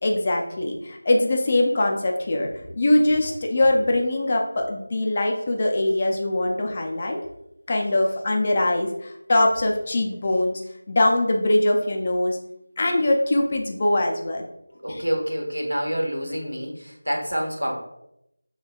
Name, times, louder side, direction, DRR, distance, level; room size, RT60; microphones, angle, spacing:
voice 1, 0.0-2.5 2.8-7.2 7.7-10.6 10.9-12.4 12.8-14.5 14.9-15.0, left 1 dB, 30° left, 1 dB, 0.6 m, -22 dB
voice 2, 14.8-17.7, equal, 85° right, 0 dB, 1.3 m, -27 dB
6.8 x 3.1 x 2.4 m, 0.82 s
figure-of-eight pair, 170°, 0 cm